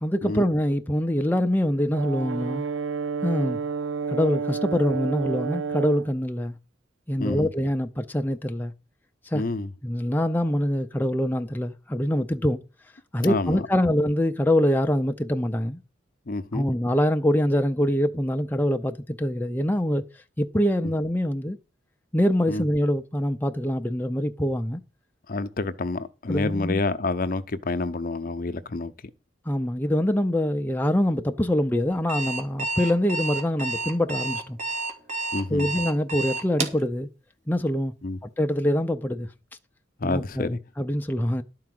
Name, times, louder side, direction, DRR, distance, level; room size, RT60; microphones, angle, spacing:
voice 1, 0.0-2.6 3.2-3.6 4.1-6.6 7.1-8.7 9.2-9.4 9.8-12.6 13.1-15.8 16.5-20.0 20.4-21.6 22.1-24.8 26.3-26.8 29.5-34.6 35.5-37.1 37.5-37.9 38.4-39.3 40.0-41.4, equal, 10° left, 0.5 m, -24 dB
Brass instrument, 1.9-6.1, right 5 dB, 85° right, 0.5 m, -30 dB
voice 2, 7.2-7.5 9.3-9.7 13.2-13.7 16.3-16.7 22.5-22.6 25.3-28.9 35.3-35.7 38.0-38.2 40.0-40.6, left 3 dB, 50° left, 0.7 m, -28 dB
Alarm, 31.9-36.8, right 3 dB, 40° right, 2.1 m, -30 dB
11.5 x 4.7 x 7.6 m
head